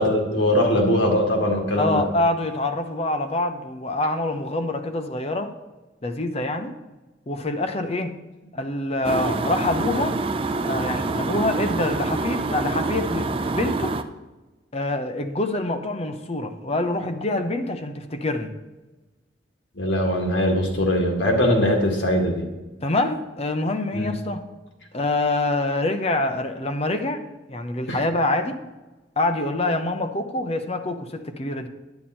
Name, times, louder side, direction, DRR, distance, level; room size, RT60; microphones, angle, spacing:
voice 1, 0.0-2.0 19.8-22.5 23.9-24.1 27.9-28.0, equal, 80° left, 1 dB, 2.1 m, -21 dB
voice 2, 1.8-5.5 6.0-6.7 7.3-8.2 8.5-10.2 10.6-14.0 14.7-18.5 22.8-24.5 24.9-27.2 27.5-28.6 29.2-31.7, left 2 dB, 35° left, 7 dB, 0.8 m, -25 dB
sound 1, 9.0-14.0, right 3 dB, 30° right, 0.5 m, -26 dB
10.5 x 9.0 x 4.4 m, 1.1 s
head